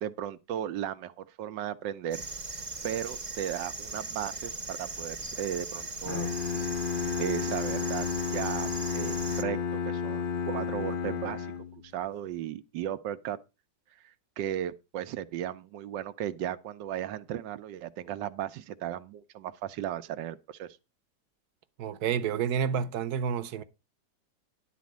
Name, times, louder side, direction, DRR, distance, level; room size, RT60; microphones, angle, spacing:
voice 1, 0.0-2.2 2.8-6.3 7.2-11.5 11.8-13.4 14.0-20.8, right 11 dB, 85° right, 1.4 m, -36 dB
sound 1, 2.1-9.4, right 3 dB, 30° right, 0.9 m, -39 dB
Bowed string instrument, 6.0-11.9, left 6 dB, 45° left, 0.7 m, -32 dB
voice 2, 21.8-23.6, right 7 dB, 65° right, 1.2 m, -30 dB
11.5 x 4.2 x 7.2 m
omnidirectional pair, 1.9 m